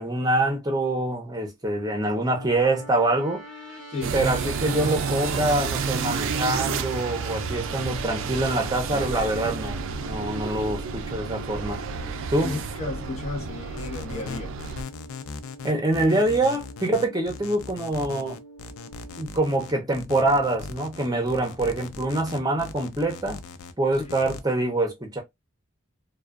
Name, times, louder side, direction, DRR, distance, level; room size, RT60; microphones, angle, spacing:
voice 1, 0.0-3.4 4.1-11.8 12.3-12.5 15.6-18.4 19.2-23.4 23.8-25.2, right 2 dB, 20° right, 0.6 m, -25 dB
sound 1, 1.6-19.3, left 2 dB, 65° left, 0.9 m, -44 dB
sound 2, 4.0-14.8, right 5 dB, 70° right, 0.3 m, -30 dB
voice 2, 12.4-14.5 24.0-24.2, left 3 dB, 30° left, 0.9 m, -33 dB
sound 3, 13.8-24.4, left 5 dB, 90° left, 0.4 m, -39 dB
2.3 x 2.2 x 2.3 m
head